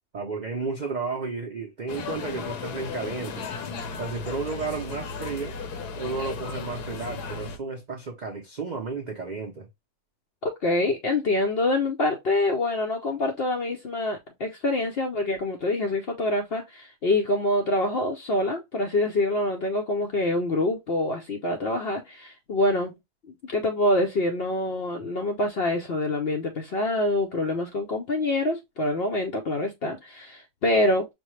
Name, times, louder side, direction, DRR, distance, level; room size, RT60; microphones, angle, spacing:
voice 1, 0.1-3.5 4.0-5.6 6.0-9.7, right 4 dB, 60° right, 0.4 m, -32 dB
sound 1, 1.9-7.6, left 5 dB, 80° left, 1.3 m, -35 dB
voice 2, 10.4-22.9 23.4-31.1, left 2 dB, 60° left, 0.6 m, -26 dB
5.3 x 2.1 x 3.0 m
omnidirectional pair, 1.7 m